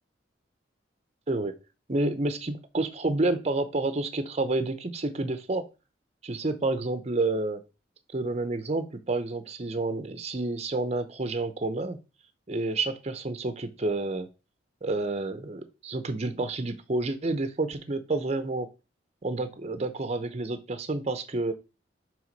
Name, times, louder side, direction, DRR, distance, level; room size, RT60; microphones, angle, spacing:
voice 1, 1.9-5.6 6.2-7.6 8.1-12.0 12.5-14.3 14.8-18.7 19.2-21.5, right 2 dB, 35° right, 10 dB, 0.7 m, -29 dB
6.1 x 3.6 x 5.2 m, 0.30 s
head